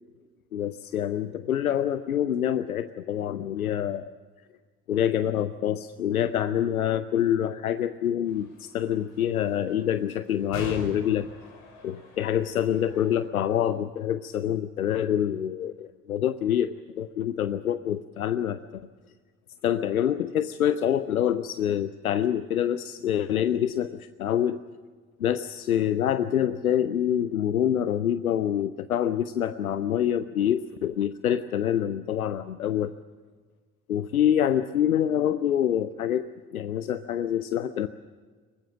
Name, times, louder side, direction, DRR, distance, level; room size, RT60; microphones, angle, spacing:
voice 1, 0.5-4.1 4.9-11.3 11.8-18.9 19.6-24.6 25.2-32.9 33.9-36.3 36.5-37.9, left 10 dB, 90° left, 13 dB, 0.6 m, -26 dB
sound 1, 8.3-13.3, left 2 dB, 70° left, 5.7 m, -43 dB
23.0 x 19.5 x 7.3 m, 1.5 s
figure-of-eight pair, 50°, 42 cm